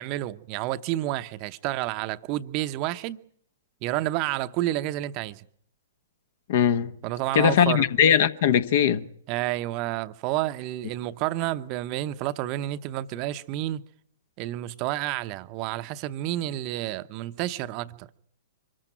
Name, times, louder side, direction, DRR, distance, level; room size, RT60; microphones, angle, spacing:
voice 1, 0.0-3.2 3.8-5.5 7.0-7.9 9.3-13.8 14.4-18.2, right 15 dB, 35° right, 0.8 m, -30 dB
voice 2, 6.5-6.9 7.3-9.0, left 8 dB, 55° left, 1.3 m, -20 dB
25.0 x 14.0 x 9.0 m
figure-of-eight pair, 115°, 0 cm